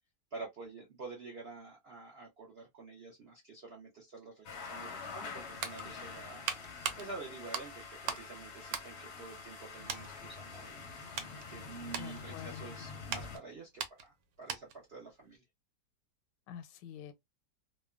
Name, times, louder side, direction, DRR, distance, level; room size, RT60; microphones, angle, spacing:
voice 1, 0.3-6.5 7.0-15.4, right 3 dB, 65° right, 0.6 m, -48 dB
sound 1, 4.4-13.4, left 5 dB, 60° left, 0.7 m, -46 dB
sound 2, 5.5-8.3 8.6-9.6 9.9-10.1 10.7-14.9 15.2-15.4, right 7 dB, 85° right, 1.2 m, -41 dB
voice 2, 12.0-12.7 16.5-17.1, left 9 dB, 90° left, 1.2 m, -46 dB
2.9 x 2.1 x 2.2 m
omnidirectional pair, 1.8 m